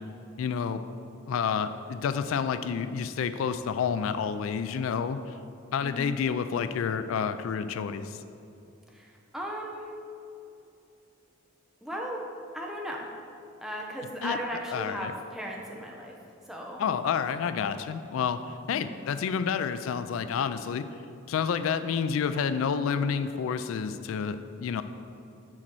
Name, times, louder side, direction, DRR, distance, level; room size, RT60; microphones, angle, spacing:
voice 1, 0.4-0.8 1.3-5.2 5.7-8.2 14.2-14.4 14.7-15.1 16.8-18.4 18.7-20.9 21.3-24.8, left 6 dB, 75° left, 11 dB, 0.3 m, -29 dB
voice 2, 8.9-10.0 11.8-12.3 12.5-13.1 13.6-16.1 16.5-16.8 18.7-18.9, equal, ahead, -1 dB, 0.7 m, -36 dB
6.4 x 4.3 x 6.1 m, 2.7 s
head